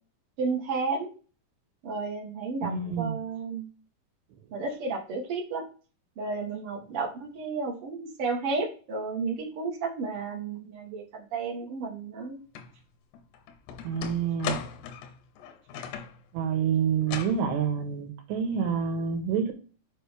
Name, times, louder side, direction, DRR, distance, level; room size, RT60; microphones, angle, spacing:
voice 1, 0.4-1.1 1.8-3.7 4.5-5.6 6.2-12.4, right 4 dB, 65° right, -2 dB, 1.4 m, -32 dB
voice 2, 2.6-3.2 13.8-14.6 16.3-19.5, right 7 dB, 85° right, 4 dB, 3.6 m, -28 dB
sound 1, 12.6-12.7 13.1-16.2 17.0-17.4, left 8 dB, 80° left, 3.0 m, -37 dB
8.6 x 5.0 x 3.4 m, 0.37 s
omnidirectional pair, 4.9 m